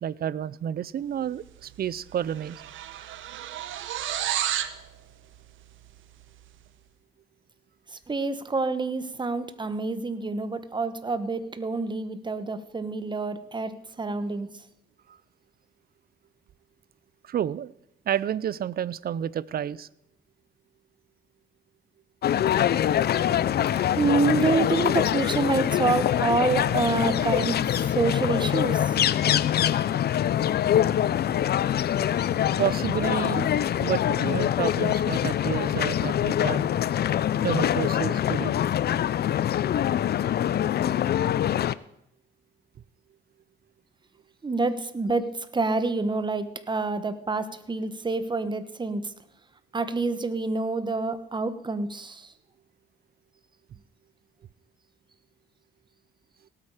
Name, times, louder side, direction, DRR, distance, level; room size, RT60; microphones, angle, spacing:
voice 1, 0.0-2.6 15.1-15.2 17.2-17.7 18.1-19.9 32.6-33.5 33.8-36.7 37.4-38.6, right 9 dB, 50° right, 21 dB, 0.5 m, -30 dB
sound 1, 1.6-1.8 2.1-4.8, right 11 dB, 80° right, 0.9 m, -31 dB
voice 2, 7.9-14.5 24.0-27.6 27.9-29.0 44.4-49.1 49.7-52.3, right 3 dB, 25° right, 11 dB, 1.2 m, -27 dB
sound 2, 22.2-41.8, left 10 dB, 55° left, 0.5 m, -24 dB
18.0 x 8.7 x 4.9 m, 0.80 s
cardioid pair, 90°, 20 cm